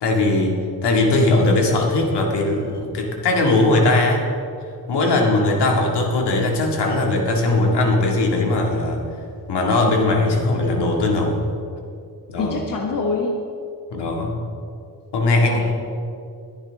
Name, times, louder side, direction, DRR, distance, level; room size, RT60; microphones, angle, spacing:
voice 1, 0.0-4.2 4.9-9.0 9.5-11.4 12.3-12.6 13.9-14.4 15.1-15.7, left 2 dB, 85° left, 0 dB, 2.2 m, -19 dB
voice 2, 12.4-13.4 15.6-15.7, left 3 dB, 55° left, 0 dB, 1.5 m, -24 dB
21.0 x 10.5 x 3.6 m, 2.4 s
wide cardioid pair, 145°, 40 cm